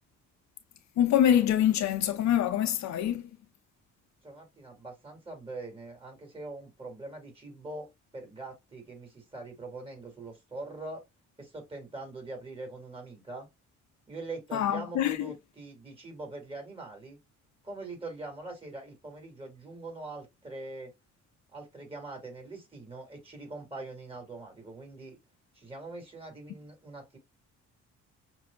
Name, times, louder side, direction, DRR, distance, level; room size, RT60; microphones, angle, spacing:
voice 1, 1.0-3.3 14.5-15.3, left 10 dB, 65° left, 0.5 m, -25 dB
voice 2, 4.2-11.1 11.4-13.5 14.1-17.2 17.6-20.9 21.5-25.2 25.5-27.2, right 2 dB, 20° right, 2.2 m, -43 dB
5.8 x 2.0 x 2.2 m
cardioid pair, 90°, 30 cm